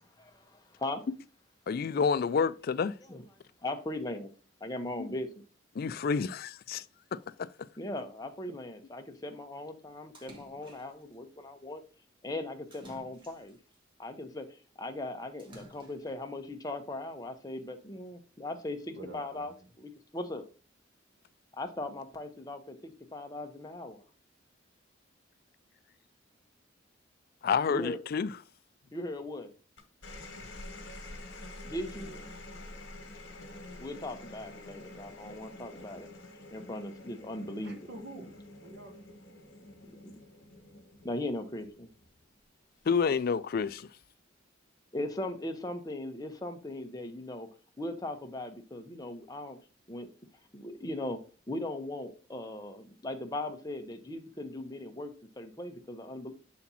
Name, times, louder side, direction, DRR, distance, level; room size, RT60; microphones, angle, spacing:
voice 1, 0.2-1.0 3.1-3.2 3.6-4.3 4.6-5.3 7.8-11.8 12.2-13.6 14.0-14.5 14.8-19.5 19.8-20.4 21.6-24.0 27.7-28.0 28.9-29.5 31.6-32.1 33.8-36.1 36.5-37.8 39.9-40.0 41.0-41.9 44.9-47.5 47.8-49.6 49.9-50.1 50.5-51.2 51.5-56.3, left 1 dB, 20° left, 0.8 m, -39 dB
voice 2, 1.7-3.0 5.0-5.1 5.8-6.8 7.1-7.5 27.4-28.4 42.9-43.9, left 5 dB, 50° left, 0.3 m, -29 dB
Splash splatter, 10.1-11.1 12.7-13.8 15.4-16.2, equal, 25° right, 1.3 m, -54 dB
voice 3, 18.9-19.7 30.3-30.5 31.9-32.5 37.6-38.9, right 2 dB, 55° right, 1.2 m, -48 dB
sound 1, 29.8-42.4 43.6-44.0, left 2 dB, 65° left, 1.4 m, -48 dB
7.1 x 4.2 x 4.1 m
head